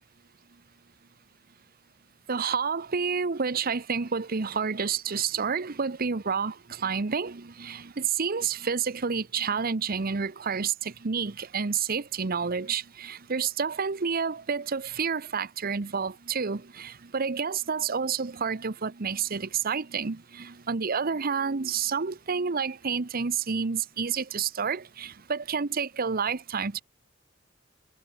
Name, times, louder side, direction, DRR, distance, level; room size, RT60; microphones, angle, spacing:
voice 1, 2.3-26.8, right 6 dB, 50° right, 0.8 m, -29 dB
head